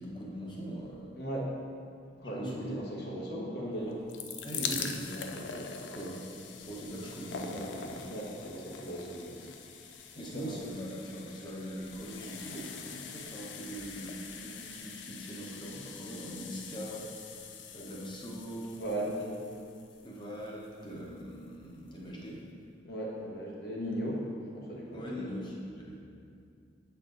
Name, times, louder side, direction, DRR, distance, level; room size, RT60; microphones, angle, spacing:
voice 1, 0.0-1.1 2.3-2.8 4.4-5.7 5.9-8.0 10.1-18.8 20.0-22.4 24.9-25.9, right 1 dB, 25° left, -4 dB, 1.0 m, -42 dB
voice 2, 1.2-1.5 2.2-4.1 4.5-4.9 7.5-7.7 8.1-9.5 10.2-10.6 18.8-19.4 22.8-24.2 24.5-25.3, right 1 dB, 60° left, -4 dB, 1.2 m, -37 dB
sound 1, 3.8-20.9 21.6-21.7 21.9-22.0, left 6 dB, 80° left, 0.5 m, -43 dB
8.0 x 4.3 x 3.9 m, 2.4 s
head